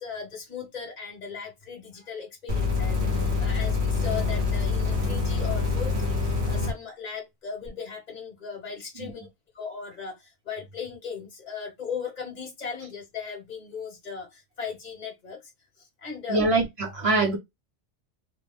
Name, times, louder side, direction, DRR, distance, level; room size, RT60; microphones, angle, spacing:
voice 1, 0.0-9.3 9.5-16.4, left 6 dB, 40° left, 1.1 m, -37 dB
sound 1, 2.5-6.7 7.7-7.8, left 4 dB, 70° right, 1.5 m, -25 dB
voice 2, 16.3-17.4, right 2 dB, 35° right, 0.9 m, -24 dB
3.0 x 2.1 x 3.4 m
omnidirectional pair, 1.1 m